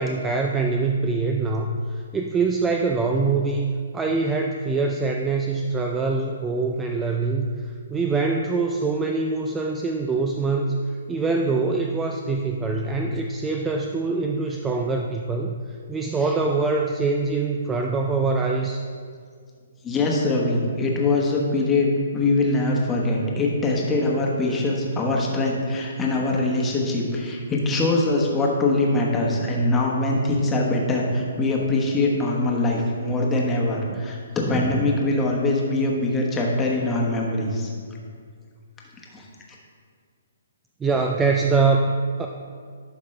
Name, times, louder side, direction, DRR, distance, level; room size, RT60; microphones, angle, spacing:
voice 1, 0.0-3.7 3.9-18.9 33.9-34.0 34.4-35.0 40.8-42.3, right 3 dB, 10° right, 2 dB, 0.3 m, -24 dB
voice 2, 19.8-37.7 39.1-39.2, left 2 dB, 15° left, -2 dB, 1.1 m, -23 dB
11.5 x 5.2 x 3.3 m, 2.1 s
hypercardioid pair, 155°, 0 cm